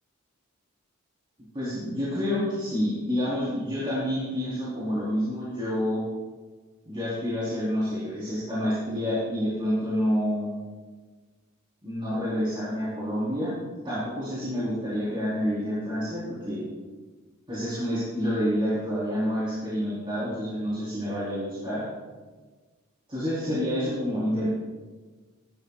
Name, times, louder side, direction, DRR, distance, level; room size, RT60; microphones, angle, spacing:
voice 1, 1.5-6.0 6.9-10.5 11.8-13.5 13.8-16.6 17.5-21.8 23.1-24.5, equal, 25° right, -10 dB, 4.1 m, -28 dB
19.0 x 13.0 x 2.5 m, 1.4 s
head